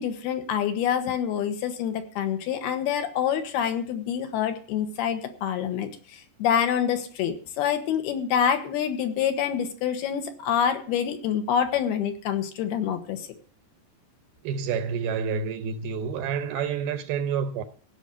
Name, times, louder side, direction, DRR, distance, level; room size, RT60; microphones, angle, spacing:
voice 1, 0.0-13.3, left 8 dB, 70° left, 3.4 m, -26 dB
voice 2, 14.4-17.6, right 6 dB, 75° right, 2.5 m, -28 dB
16.5 x 6.2 x 8.4 m
omnidirectional pair, 4.8 m